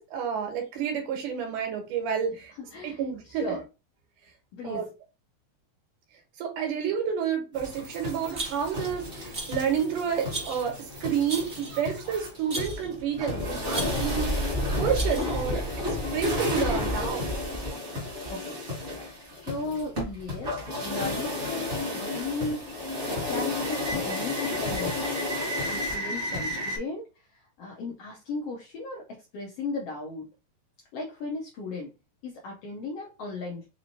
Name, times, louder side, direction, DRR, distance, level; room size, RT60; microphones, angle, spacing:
voice 1, 0.0-2.5 2.8-3.6 4.6-4.9 6.4-15.6 15.9-17.3, right 8 dB, 85° right, 2.6 m, -30 dB
voice 2, 2.6-3.0 3.4-3.6 4.5-4.9 18.3-18.6 19.3-22.8 23.1-25.2 25.7-30.3 30.9-31.9 32.2-33.7, left 3 dB, 75° left, 1.4 m, -36 dB
sound 1, 7.5-26.8, left 1 dB, 35° right, 1.1 m, -31 dB
Rattle, 8.3-8.8 9.3-9.7 10.3-10.7 11.3-11.8 12.5-12.9 13.7-14.2 14.9-15.5, right 2 dB, 65° right, 0.5 m, -36 dB
5.3 x 2.9 x 2.6 m
omnidirectional pair, 3.6 m